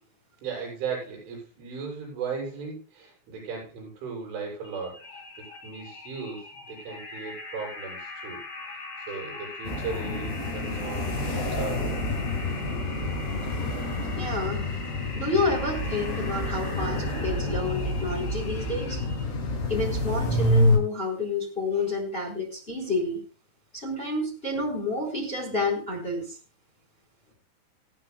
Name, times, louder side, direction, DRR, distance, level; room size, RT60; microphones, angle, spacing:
voice 1, 0.4-5.0 5.6-8.4 8.7-12.0, right 5 dB, 75° right, 0 dB, 9.5 m, -37 dB
sound 1, 4.6-19.2, left 3 dB, 40° left, 5.0 m, -41 dB
sound 2, 9.6-20.8, left 1 dB, 60° left, 7.6 m, -28 dB
voice 2, 14.2-14.6 15.1-19.0 19.7-23.2 23.7-26.4, left 2 dB, 15° left, 0 dB, 3.7 m, -29 dB
28.0 x 10.0 x 2.3 m, 0.31 s
omnidirectional pair, 5.6 m